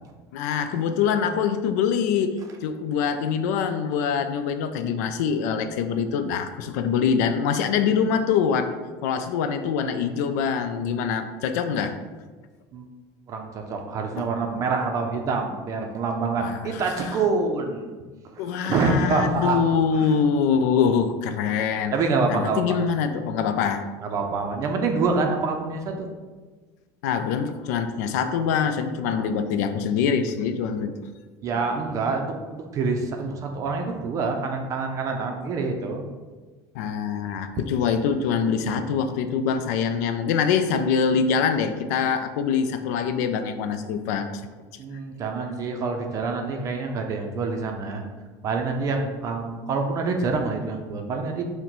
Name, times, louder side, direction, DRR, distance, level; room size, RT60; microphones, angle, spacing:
voice 1, 0.3-8.7 9.0-12.0 14.2-14.3 16.4-17.1 18.4-21.9 22.3-23.9 27.0-30.9 36.7-44.3, left 6 dB, 90° left, 9 dB, 0.4 m, -24 dB
voice 2, 13.3-17.9 18.3-19.6 20.0-20.1 21.9-22.8 24.0-26.1 29.1-29.2 31.4-36.0 38.6-38.9 44.8-48.0 48.4-51.4, right 4 dB, 40° right, 3 dB, 0.4 m, -26 dB
4.4 x 2.1 x 3.8 m, 1.3 s
cardioid pair, 135°, 9 cm